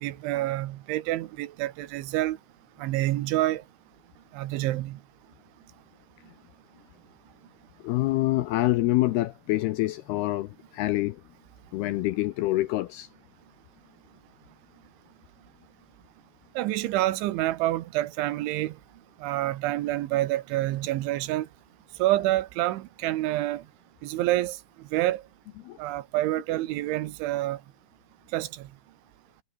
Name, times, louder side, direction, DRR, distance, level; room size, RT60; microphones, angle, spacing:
voice 1, 0.0-2.4 2.8-3.6 4.3-5.0 16.6-18.7 19.2-21.5 22.0-23.6 24.0-24.6 24.9-25.2 25.8-27.6 28.3-28.5, right 16 dB, 90° right, 3.6 m, -27 dB
voice 2, 7.8-11.2 11.7-13.1 25.7-25.8, left 17 dB, 80° left, 2.4 m, -26 dB
omnidirectional pair, 5.4 m